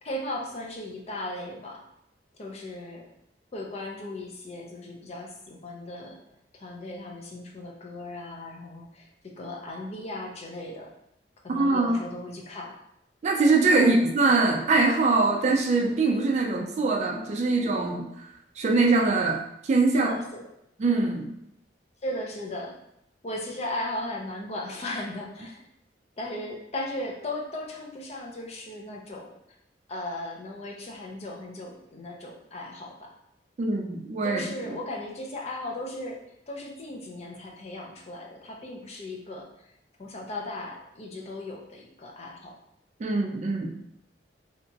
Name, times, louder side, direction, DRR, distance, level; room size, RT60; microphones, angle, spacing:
voice 1, 0.0-1.8 2.4-3.1 3.5-6.2 6.5-10.9 11.4-12.7 13.8-14.0 19.9-20.4 22.0-22.8 23.2-25.6 26.2-29.3 29.9-33.1 34.2-36.2 36.5-39.7 40.0-42.6, left 1 dB, 35° left, 0 dB, 0.4 m, -37 dB
voice 2, 11.5-12.0 13.2-18.3 18.6-20.1 20.8-21.3 33.6-34.5 43.0-43.8, right 3 dB, 40° right, 2 dB, 0.3 m, -23 dB
2.8 x 2.3 x 2.7 m, 0.78 s
head